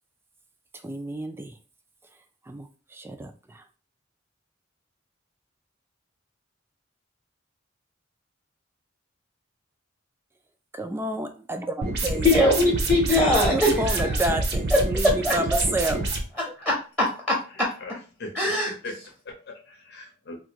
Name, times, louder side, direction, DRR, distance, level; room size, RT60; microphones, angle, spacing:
voice 1, 0.8-1.6 2.5-3.6 10.7-12.3 13.5-16.0, right 1 dB, 10° right, 0.3 m, -30 dB
sound 1, 11.8-16.2, right 2 dB, 55° right, 0.7 m, -27 dB
voice 2, 12.2-14.1 14.7-14.8 15.2-15.6 16.6-17.7 18.3-18.7, left 1 dB, 5° left, 0.8 m, -22 dB
voice 3, 15.9-16.3 17.4-18.3 18.8-18.9 19.2-20.4, left 2 dB, 55° left, 0.7 m, -40 dB
3.5 x 2.5 x 2.9 m
head